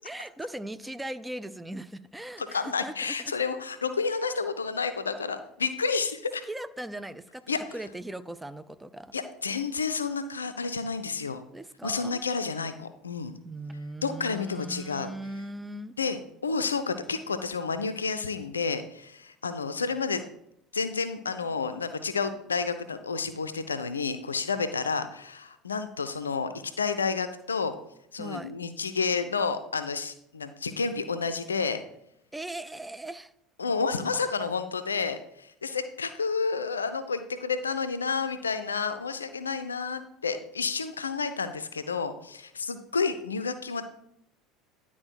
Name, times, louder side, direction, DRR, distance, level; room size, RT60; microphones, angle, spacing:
voice 1, 0.0-3.3 6.5-9.2 11.5-12.2 13.4-15.9 28.2-28.5 32.3-33.3, right 1 dB, 10° right, 14 dB, 0.4 m, -39 dB
voice 2, 2.4-6.4 7.5-7.6 9.1-11.4 11.8-13.3 14.0-15.1 16.0-20.2 20.7-27.7 28.1-31.8 33.6-43.8, left 5 dB, 85° left, 10 dB, 0.4 m, -30 dB
10.5 x 4.2 x 4.5 m, 0.76 s
figure-of-eight pair, 70°, 0 cm